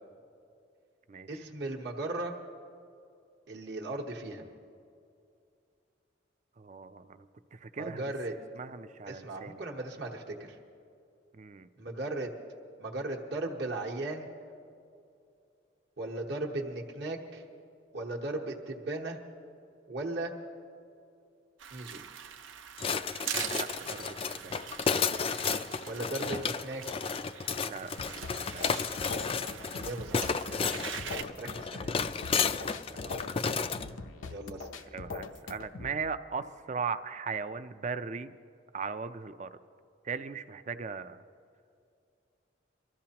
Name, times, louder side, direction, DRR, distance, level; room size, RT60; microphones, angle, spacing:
voice 1, 1.3-2.3 3.5-4.5 7.8-8.3 9.1-10.6 11.8-12.3 12.8-14.3 16.0-17.4 17.9-19.2 19.9-20.3 21.7-22.0 25.9-26.8 29.7-30.9 31.3-31.9 34.3-34.9, right 2 dB, 60° right, -1 dB, 1.2 m, -37 dB
voice 2, 6.6-7.3 7.5-8.0 8.6-9.6 11.3-11.7 23.5-24.2 24.4-24.7 27.6-28.7 32.9-33.2 34.9-38.3 38.7-39.6 40.0-41.2, right 5 dB, 40° right, 11 dB, 0.4 m, -38 dB
sound 1, 21.6-31.2, right 9 dB, 85° right, 0.7 m, -43 dB
sound 2, 22.8-33.9, left 5 dB, 30° left, 0.3 m, -32 dB
sound 3, 28.0-36.0, left 3 dB, 90° left, 0.7 m, -42 dB
24.0 x 14.0 x 2.9 m, 2.5 s
head